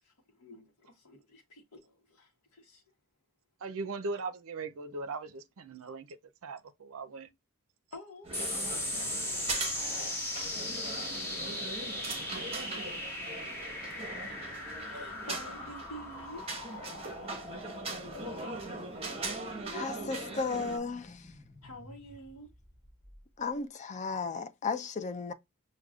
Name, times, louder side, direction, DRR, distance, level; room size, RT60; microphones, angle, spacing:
voice 1, 0.0-2.8 7.9-8.8 14.9-16.5 21.6-22.5, equal, 75° left, 0.9 m, -49 dB
voice 2, 3.6-7.3 8.5-8.8 9.3-10.2, right 3 dB, 65° right, 0.5 m, -40 dB
sound 1, 8.2-20.8, right 2 dB, 25° right, 1.1 m, -40 dB
sound 2, 8.3-23.1, left 1 dB, 10° left, 1.6 m, -39 dB
voice 3, 19.7-21.3 23.4-25.3, left 4 dB, 30° left, 0.4 m, -35 dB
6.2 x 2.2 x 2.3 m
head